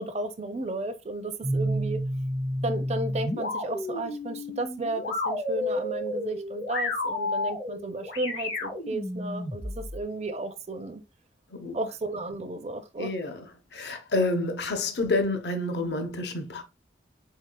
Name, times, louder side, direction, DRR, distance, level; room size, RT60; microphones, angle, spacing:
voice 1, 0.0-2.0 2.6-11.0 11.7-13.1, right 2 dB, 35° right, 0.5 m, -33 dB
sound 1, 1.4-10.0, left 1 dB, 80° left, 1.9 m, -31 dB
voice 2, 13.0-13.5 13.7-16.6, left 2 dB, 60° left, 0.7 m, -28 dB
4.6 x 3.9 x 2.2 m
head